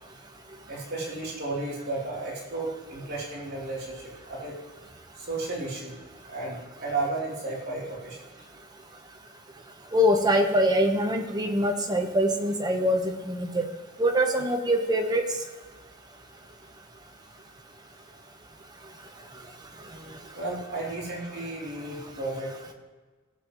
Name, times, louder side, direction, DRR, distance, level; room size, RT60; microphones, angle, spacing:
voice 1, 0.7-4.6 5.1-6.0 6.2-8.2 19.8-22.5, right 2 dB, 50° right, -5 dB, 3.2 m, -33 dB
voice 2, 9.9-13.6 14.0-15.2, equal, 20° right, 4 dB, 1.1 m, -24 dB
17.5 x 7.7 x 3.1 m, 1.3 s
head